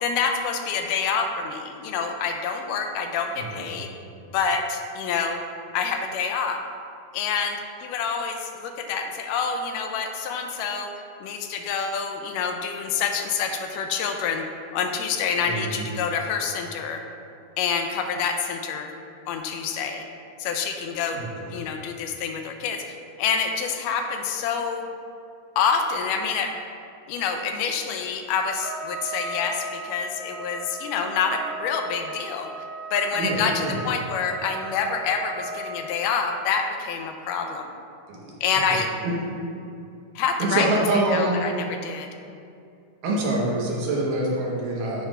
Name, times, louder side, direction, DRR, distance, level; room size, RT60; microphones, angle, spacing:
voice 1, 0.0-3.9 4.3-5.4 5.7-6.6 7.1-10.9 11.2-14.4 14.7-17.0 17.6-18.9 19.3-20.1 20.4-21.2 21.5-24.8 25.6-26.6 27.1-32.5 32.9-37.7 38.4-38.9 40.2-40.7 41.1-42.1, left 6 dB, 85° left, 4 dB, 2.1 m, -27 dB
voice 2, 3.4-3.7 15.4-15.9 21.1-21.6 33.1-33.8 38.1-38.3 39.0-39.1 40.4-41.4 43.0-45.1, right 2 dB, 80° right, -4 dB, 2.8 m, -26 dB
Trumpet, 28.6-35.9, right 2 dB, 60° right, 2.7 m, -36 dB
9.5 x 3.3 x 4.9 m, 2.5 s
omnidirectional pair, 3.8 m